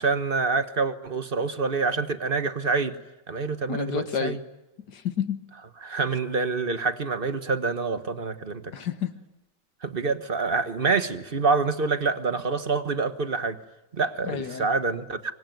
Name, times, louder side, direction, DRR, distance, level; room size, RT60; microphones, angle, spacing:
voice 1, 0.0-2.9 3.3-4.4 5.8-8.7 9.8-13.6 13.9-15.3, right 4 dB, 35° right, 10 dB, 1.2 m, -26 dB
voice 2, 3.7-4.4 4.9-5.4 8.7-9.1 14.2-14.7, left 8 dB, 70° left, 10 dB, 2.1 m, -30 dB
25.5 x 24.0 x 9.3 m, 1.0 s
omnidirectional pair, 1.9 m